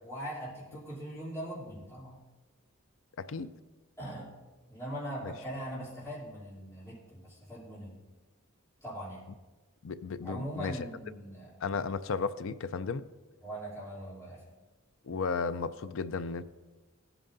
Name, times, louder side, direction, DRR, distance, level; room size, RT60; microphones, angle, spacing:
voice 1, 0.0-2.2 4.0-4.3 4.7-8.0 8.8-9.2 10.2-11.5 13.4-14.5, right 1 dB, 15° left, -9 dB, 3.1 m, -41 dB
voice 2, 3.2-3.5 5.2-5.3 9.8-10.7 11.6-13.0 15.0-16.4, left 5 dB, 65° left, 13 dB, 0.4 m, -34 dB
16.5 x 8.9 x 2.6 m, 1.2 s
head